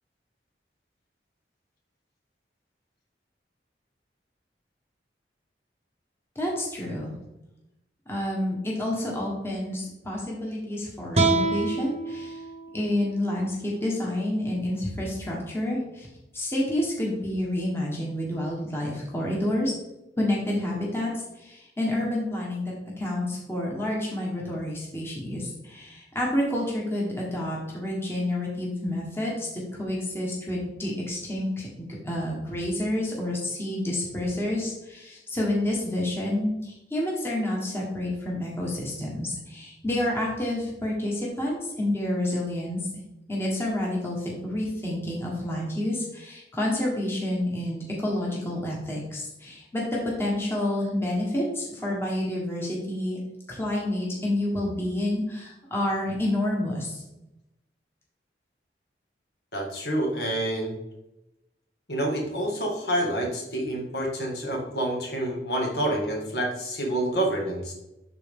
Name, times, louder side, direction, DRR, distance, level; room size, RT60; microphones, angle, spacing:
voice 1, 6.3-7.1 8.1-12.4 12.7-16.1 16.3-19.7 20.2-42.9 43.3-53.2 53.5-57.0, left 1 dB, 15° left, -3 dB, 1.5 m, -29 dB
sound 1, 11.1-14.3, right 3 dB, 35° right, 1.1 m, -28 dB
voice 2, 59.5-60.7 61.9-67.7, right 1 dB, 65° left, 0 dB, 2.1 m, -28 dB
11.5 x 4.2 x 3.7 m, 0.92 s
head